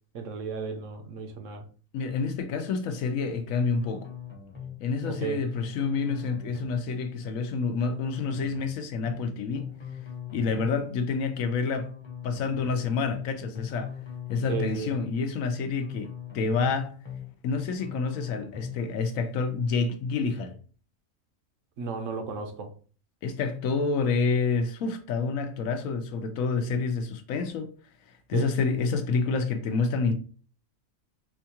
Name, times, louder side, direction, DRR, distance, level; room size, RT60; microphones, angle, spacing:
voice 1, 0.1-1.6 5.1-5.4 14.5-14.9 21.8-22.7 28.3-28.5, right 5 dB, 70° right, 1.0 m, -34 dB
voice 2, 1.9-4.1 4.8-9.7 10.3-11.9 12.2-13.9 14.3-17.0 17.4-20.6 23.2-27.7 28.3-30.1, left 4 dB, 75° left, 1.0 m, -28 dB
sound 1, 3.8-4.7 5.0-5.3 5.5-6.8 7.8-8.7 9.0-9.3 9.5-10.8 11.8-12.7 13.0-13.3 13.5-14.8 15.8-16.7 17.0-17.3 17.5-18.8, left 8 dB, 25° left, 0.9 m, -40 dB
4.4 x 2.3 x 2.8 m
omnidirectional pair, 1.5 m